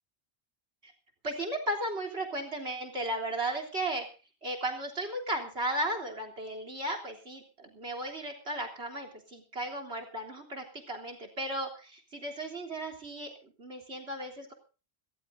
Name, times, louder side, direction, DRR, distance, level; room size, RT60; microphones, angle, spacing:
voice 1, 1.2-4.1 4.4-14.5, right 1 dB, 70° right, 6 dB, 3.8 m, -35 dB
26.0 x 14.0 x 2.7 m, 0.35 s
omnidirectional pair, 1.1 m